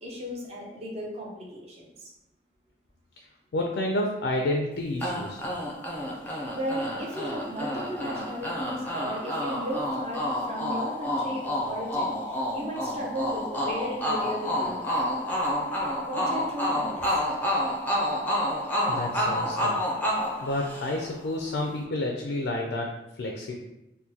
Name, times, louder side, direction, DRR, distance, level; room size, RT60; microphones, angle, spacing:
voice 1, 0.0-2.1 6.2-14.9 16.0-17.2, equal, 35° right, -2 dB, 0.7 m, -35 dB
voice 2, 3.5-5.4 18.9-19.9 20.4-23.6, left 1 dB, 80° left, 1 dB, 0.4 m, -30 dB
sound 1, 5.0-21.2, left 1 dB, 10° left, 0.5 m, -29 dB
3.6 x 2.2 x 2.8 m, 0.92 s
head